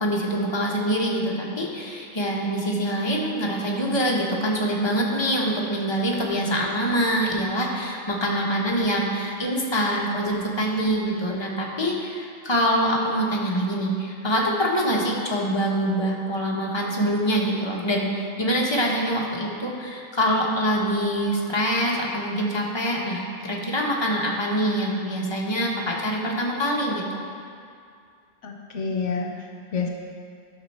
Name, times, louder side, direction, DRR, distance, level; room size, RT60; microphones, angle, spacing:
voice 1, 0.0-27.2, equal, 20° left, -2 dB, 1.2 m, -25 dB
voice 2, 28.4-29.9, left 5 dB, 65° left, 1 dB, 1.0 m, -29 dB
12.0 x 6.3 x 4.3 m, 2.3 s
omnidirectional pair, 1.4 m